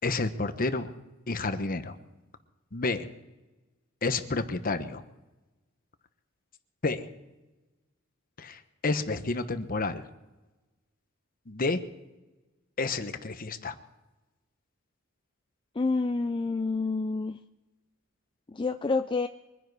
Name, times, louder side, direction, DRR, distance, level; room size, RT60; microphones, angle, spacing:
voice 1, 0.0-0.9 1.3-2.0 2.7-3.1 4.0-5.0 6.8-7.0 8.4-10.0 11.5-11.8 12.8-13.7, left 3 dB, 45° left, 10 dB, 1.0 m, -30 dB
voice 2, 15.8-17.4 18.5-19.3, left 3 dB, 25° left, 7 dB, 0.4 m, -28 dB
23.5 x 10.0 x 4.7 m, 1.1 s
head